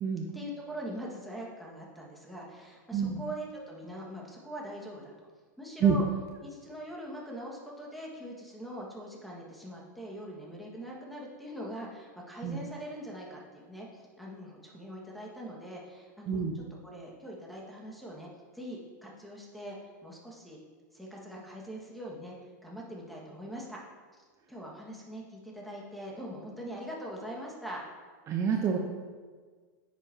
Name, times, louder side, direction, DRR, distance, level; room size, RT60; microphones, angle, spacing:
voice 1, 0.3-5.3 5.6-6.0 6.4-20.6 20.9-22.3 22.6-23.8 24.5-27.8, equal, ahead, -3 dB, 1.7 m, -42 dB
voice 2, 28.3-28.8, right 7 dB, 30° right, 2 dB, 0.8 m, -27 dB
10.5 x 7.2 x 2.8 m, 1.5 s
hypercardioid pair, 125°, 10 cm